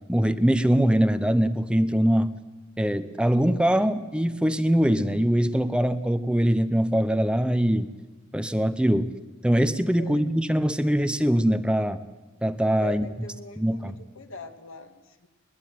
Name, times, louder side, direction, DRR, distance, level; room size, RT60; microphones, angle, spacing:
voice 1, 0.1-2.3 2.8-7.9 8.3-9.1 9.4-12.0 12.4-13.1 13.6-14.0, equal, 5° right, 11 dB, 0.8 m, -22 dB
voice 2, 12.8-15.3, left 4 dB, 80° left, 8 dB, 2.2 m, -42 dB
21.0 x 20.5 x 9.4 m, 1.2 s
head